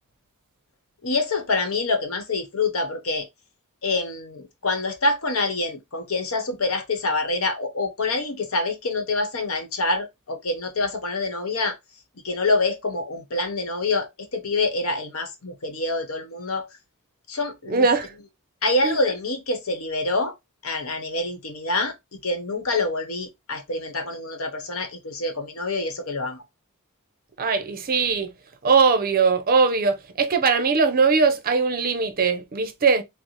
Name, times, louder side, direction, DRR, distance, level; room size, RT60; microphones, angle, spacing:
voice 1, 1.0-3.3 3.8-11.8 12.2-16.7 17.3-17.9 18.6-20.3 20.6-21.9 22.2-26.4, left 3 dB, 70° left, 0.9 m, -26 dB
voice 2, 17.7-18.1 18.8-19.0 27.4-28.3 28.6-33.0, right 4 dB, 40° right, 0.6 m, -20 dB
4.0 x 2.0 x 3.1 m
head